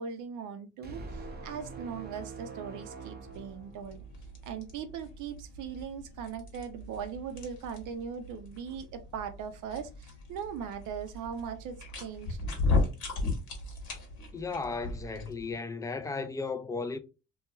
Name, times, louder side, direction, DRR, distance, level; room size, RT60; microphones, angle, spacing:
voice 1, 0.0-4.0 4.4-12.4, right 7 dB, 80° right, 0.5 m, -39 dB
sound 1, 0.8-4.3, right 4 dB, 35° right, 0.6 m, -44 dB
sound 2, 3.2-15.5, left 3 dB, 75° left, 1.1 m, -37 dB
voice 2, 14.3-17.0, left 4 dB, 10° left, 0.3 m, -35 dB
2.3 x 2.3 x 2.9 m
cardioid pair, 90°, 30 cm